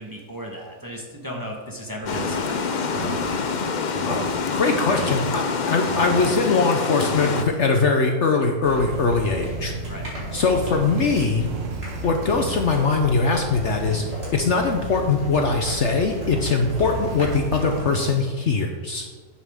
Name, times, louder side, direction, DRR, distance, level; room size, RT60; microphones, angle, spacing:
voice 1, 0.0-3.5 9.9-10.1, equal, 15° right, 0 dB, 1.1 m, -36 dB
Engine, 2.0-6.7 7.1-7.8 10.6-12.9 16.7-18.3, right 6 dB, 60° right, 1.0 m, -38 dB
Water, 2.1-7.4, left 5 dB, 70° left, 0.4 m, -26 dB
voice 2, 4.5-9.7 10.3-11.5 12.0-14.0 14.3-19.1, left 4 dB, 55° left, 4 dB, 0.9 m, -21 dB
sound 1, 8.6-17.8, right 1 dB, 40° right, 3.6 m, -32 dB
11.0 x 8.8 x 3.6 m, 1.5 s
omnidirectional pair, 1.6 m